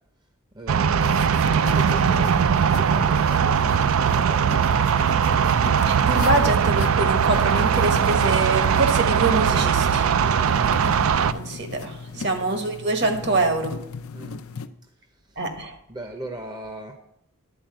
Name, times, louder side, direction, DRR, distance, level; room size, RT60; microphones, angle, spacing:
voice 1, 0.5-4.8 12.1-12.4 14.1-14.5 15.3-15.4 15.9-16.9, right 1 dB, 20° right, 0.7 m, -39 dB
sound 1, 0.7-11.3, right 7 dB, 70° right, 0.4 m, -20 dB
sound 2, 1.0-14.7, left 5 dB, 75° left, 0.5 m, -37 dB
voice 2, 5.9-10.1 11.3-13.8 15.4-15.7, right 2 dB, 50° right, 1.2 m, -25 dB
10.5 x 4.5 x 7.6 m
head